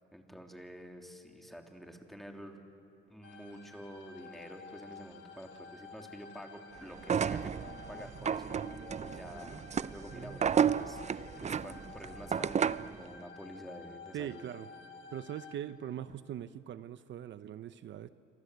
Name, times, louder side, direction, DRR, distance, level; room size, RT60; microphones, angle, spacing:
voice 1, 0.1-2.6 3.1-7.5 7.9-8.6 9.0-14.4, equal, ahead, 3 dB, 3.3 m, -49 dB
sound 1, 3.2-15.6, left 5 dB, 65° left, 3.0 m, -52 dB
sound 2, 7.0-13.0, right 7 dB, 35° right, 0.6 m, -32 dB
voice 2, 14.1-14.7 15.1-18.1, right 10 dB, 70° right, 13 dB, 0.8 m, -41 dB
27.5 x 26.5 x 8.1 m, 2.9 s
cardioid pair, 90°, 20 cm